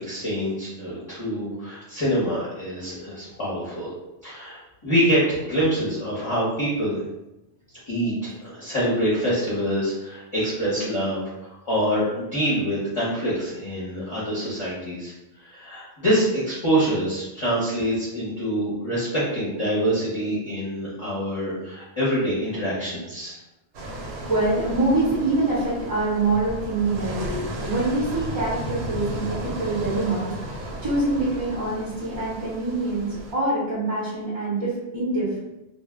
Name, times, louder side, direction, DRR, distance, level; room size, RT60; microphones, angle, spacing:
voice 1, 0.0-3.9 4.2-7.0 7.9-15.1 15.4-23.3, equal, 30° left, -9 dB, 0.7 m, -25 dB
sound 1, 23.7-33.3, right 1 dB, 75° right, 0.8 m, -34 dB
voice 2, 24.3-35.4, right 2 dB, 30° right, -9 dB, 0.5 m, -25 dB
2.1 x 2.0 x 3.4 m, 0.95 s
omnidirectional pair, 1.1 m